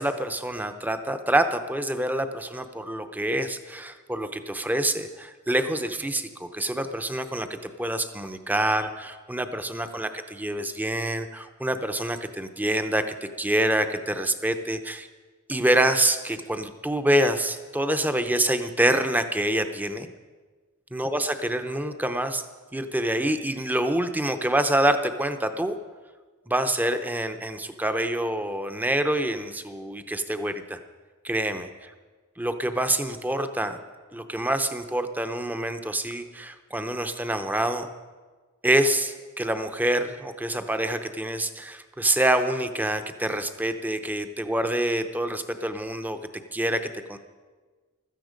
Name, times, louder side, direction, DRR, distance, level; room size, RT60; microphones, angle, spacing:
voice 1, 0.0-15.1 15.5-20.1 20.9-22.4 22.7-25.8 26.5-30.8 31.2-31.7 32.4-33.8 34.1-37.9 38.6-46.2 46.5-47.2, right 1 dB, 10° right, 8 dB, 0.7 m, -26 dB
16.0 x 13.5 x 5.2 m, 1.4 s
head